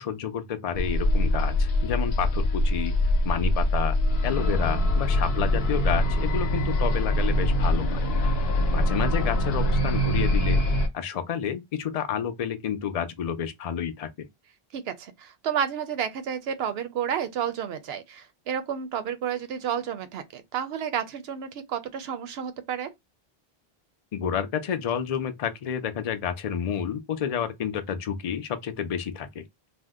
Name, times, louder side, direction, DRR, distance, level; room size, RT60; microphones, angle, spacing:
voice 1, 0.0-2.9 3.3-4.0 4.2-8.0 8.7-10.6 10.9-14.3 24.1-29.4, left 8 dB, 55° left, 0.4 m, -30 dB
sound 1, 0.7-10.9, left 1 dB, 75° left, 0.9 m, -23 dB
voice 2, 14.7-22.9, right 8 dB, 80° right, 0.8 m, -31 dB
2.6 x 2.0 x 3.5 m
omnidirectional pair, 1.0 m